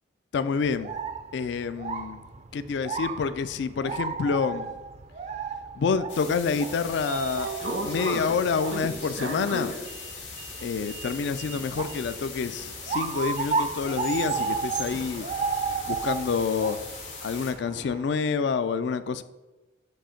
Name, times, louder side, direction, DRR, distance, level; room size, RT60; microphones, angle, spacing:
voice 1, 0.3-0.9 1.3-2.2 2.5-4.7 5.8-7.5 7.8-9.8 10.6-15.3 15.9-16.8 17.2-19.2, left 5 dB, 65° left, 13 dB, 0.3 m, -28 dB
sound 1, 0.6-18.0, right 5 dB, 35° right, 0.4 m, -34 dB
sound 2, 6.1-17.5, left 5 dB, 80° left, 2.0 m, -41 dB
Sliding door, 6.5-16.6, right 2 dB, 75° right, 1.1 m, -37 dB
7.5 x 2.7 x 5.7 m, 1.1 s
head